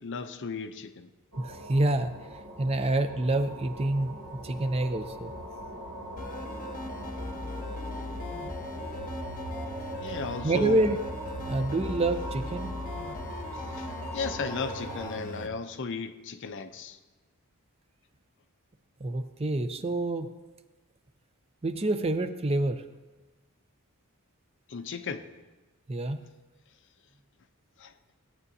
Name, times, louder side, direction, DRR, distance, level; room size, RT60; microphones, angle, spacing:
voice 1, 0.0-1.1 10.0-10.8 13.5-17.0 24.7-25.3 27.8-27.9, left 4 dB, 55° left, 0.6 m, -35 dB
sound 1, 1.3-15.1, right 1 dB, 75° right, 2.1 m, -40 dB
voice 2, 1.4-2.2 2.6-5.3 10.4-11.0 11.4-12.7 19.0-20.3 21.6-22.8 25.9-26.2, right 2 dB, 25° right, 0.5 m, -27 dB
sound 2, 6.2-15.5, left 1 dB, 35° left, 0.9 m, -39 dB
17.0 x 8.8 x 2.8 m
head